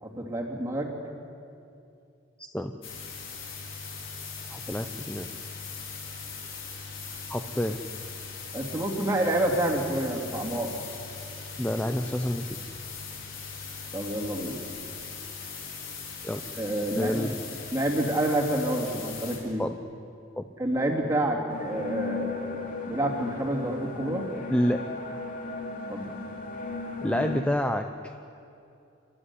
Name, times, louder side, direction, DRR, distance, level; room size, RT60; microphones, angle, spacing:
voice 1, 0.0-0.9 8.5-10.7 13.9-14.6 16.6-17.3 17.7-19.6 20.6-24.3 25.9-26.1, right 1 dB, 15° right, -1 dB, 2.9 m, -28 dB
voice 2, 2.4-2.7 4.5-5.3 7.3-7.8 11.6-12.6 16.2-16.5 17.0-17.3 19.6-19.7 20.4-20.5 24.5-24.8 27.0-27.9, equal, 5° left, 6 dB, 0.6 m, -28 dB
sound 1, 2.8-19.4, left 5 dB, 80° left, 4.6 m, -40 dB
sound 2, 21.5-27.4, left 4 dB, 40° left, 2.9 m, -36 dB
27.5 x 12.5 x 9.9 m, 2.6 s
head